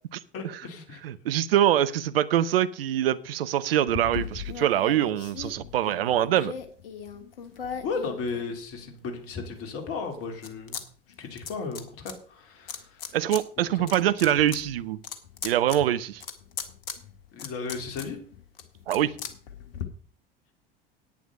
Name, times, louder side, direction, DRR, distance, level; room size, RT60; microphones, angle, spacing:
voice 1, 0.3-1.0 7.8-10.8 11.2-13.2 13.7-13.9 17.3-18.2, left 4 dB, 50° left, 5 dB, 3.2 m, -35 dB
voice 2, 1.0-6.5 13.1-15.0 15.4-16.2 18.9-19.1, right 11 dB, 75° right, 15 dB, 0.8 m, -24 dB
sound 1, 3.9-8.9 9.4-10.8 11.1-12.1 12.7-13.4 13.8-19.8, left 7 dB, 70° left, 1.7 m, -39 dB
10.5 x 9.2 x 5.3 m, 0.43 s
figure-of-eight pair, 70°, 30 cm